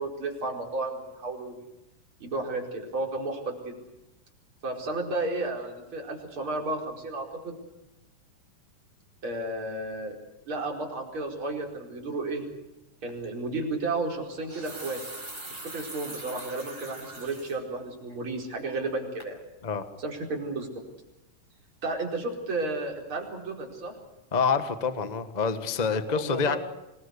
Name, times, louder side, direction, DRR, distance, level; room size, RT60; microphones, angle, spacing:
voice 1, 0.0-1.7 2.2-3.8 4.6-7.6 9.2-10.2 10.5-12.4 13.0-15.0 15.5-19.4 20.0-20.7 21.8-23.9 26.1-26.6, right 2 dB, 40° right, 0 dB, 5.4 m, -33 dB
sound 1, 13.1-13.3 14.3-17.6 18.0-18.1 18.6-19.0 19.2-19.3, right 2 dB, 25° right, 5.2 m, -42 dB
voice 2, 24.3-26.6, left 5 dB, 85° left, 10 dB, 0.3 m, -27 dB
26.5 x 20.5 x 8.3 m, 0.94 s
omnidirectional pair, 3.6 m